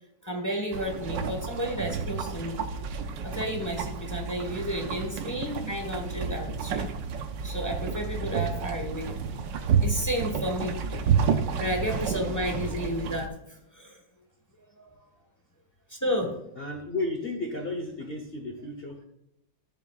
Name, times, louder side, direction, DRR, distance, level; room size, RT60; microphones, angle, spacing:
voice 1, 0.2-2.6 3.2-6.9 7.4-9.2 9.8-10.8 11.6-14.0 14.7-15.0 15.9-16.4, equal, 10° left, 2 dB, 1.0 m, -32 dB
sound 1, 0.7-13.3, right 6 dB, 75° right, 1.4 m, -30 dB
voice 2, 16.6-19.0, left 2 dB, 40° left, 2 dB, 0.9 m, -33 dB
13.0 x 7.1 x 2.4 m, 0.85 s
omnidirectional pair, 2.1 m